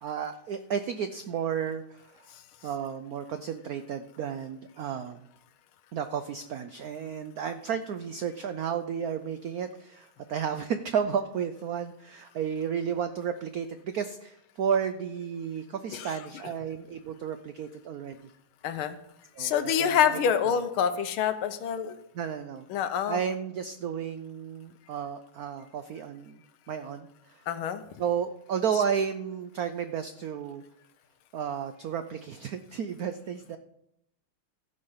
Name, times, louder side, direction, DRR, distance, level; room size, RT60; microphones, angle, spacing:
voice 1, 0.0-2.3 2.6-5.2 5.9-18.3 19.4-20.0 22.1-22.6 23.1-26.4 26.7-27.4 28.0-30.6 31.3-33.6, right 7 dB, 85° right, 9 dB, 0.8 m, -32 dB
voice 2, 18.6-19.0 19.4-22.0 22.7-23.2 27.5-27.8, left 8 dB, 80° left, 10 dB, 1.6 m, -26 dB
15.0 x 5.3 x 5.6 m, 0.78 s
omnidirectional pair, 2.3 m